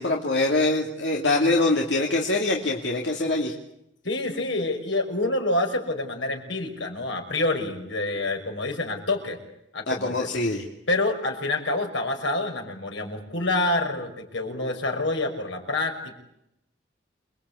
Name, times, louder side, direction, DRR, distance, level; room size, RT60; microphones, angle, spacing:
voice 1, 0.0-3.5 9.9-10.6, left 2 dB, 70° left, 0 dB, 2.8 m, -24 dB
voice 2, 4.0-9.4 9.7-10.3 10.9-16.2, left 2 dB, 85° left, 3 dB, 6.0 m, -27 dB
28.5 x 21.5 x 8.5 m, 0.81 s
head